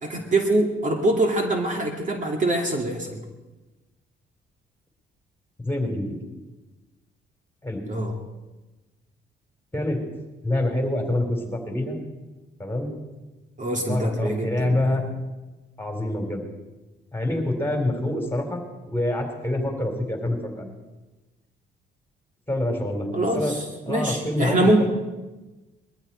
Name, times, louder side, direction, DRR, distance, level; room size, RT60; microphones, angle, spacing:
voice 1, 0.0-3.2 7.9-8.2 13.6-14.8 23.1-24.8, right 1 dB, 40° right, 2 dB, 2.3 m, -24 dB
voice 2, 5.6-6.2 7.6-7.8 9.7-10.0 10.4-12.0 12.6-12.9 13.9-15.1 15.8-16.4 17.1-20.7 22.5-23.5 23.9-24.8, left 1 dB, 10° left, 3 dB, 3.6 m, -26 dB
21.0 x 14.0 x 4.4 m, 1.1 s
cardioid pair, 90°, 20 cm